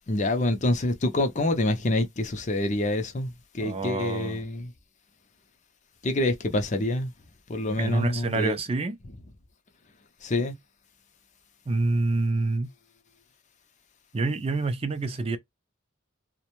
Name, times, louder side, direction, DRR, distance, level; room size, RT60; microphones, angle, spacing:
voice 1, 0.1-4.7 6.0-7.1 7.5-8.6 10.2-10.6, left 1 dB, 35° left, 0.5 m, -26 dB
voice 2, 3.6-4.4 7.8-9.0 11.7-12.7 14.1-15.4, right 3 dB, 30° right, 0.3 m, -27 dB
2.5 x 2.1 x 2.9 m
head